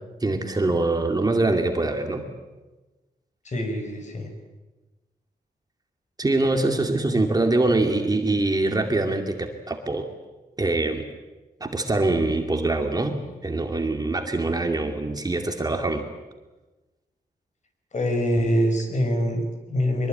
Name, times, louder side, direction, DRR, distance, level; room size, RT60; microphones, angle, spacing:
voice 1, 0.2-2.2 6.2-10.1 10.6-11.0 11.6-16.0, right 2 dB, 25° right, 4 dB, 2.4 m, -24 dB
voice 2, 3.4-4.3 17.9-20.1, equal, 45° left, 5 dB, 5.7 m, -24 dB
23.0 x 23.0 x 9.1 m, 1.1 s
wide cardioid pair, 120°, 16 cm